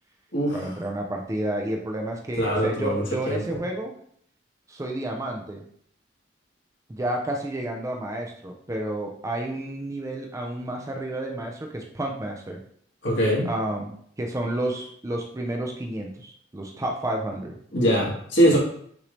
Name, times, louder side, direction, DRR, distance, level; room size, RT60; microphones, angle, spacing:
voice 1, 0.5-3.9 4.7-5.6 6.9-12.6 13.4-17.6 18.5-18.6, right 1 dB, 15° right, 1 dB, 0.5 m, -31 dB
voice 2, 2.3-3.6 13.0-13.5 17.7-18.6, equal, 75° left, -5 dB, 1.9 m, -22 dB
6.0 x 2.7 x 3.2 m, 0.64 s
head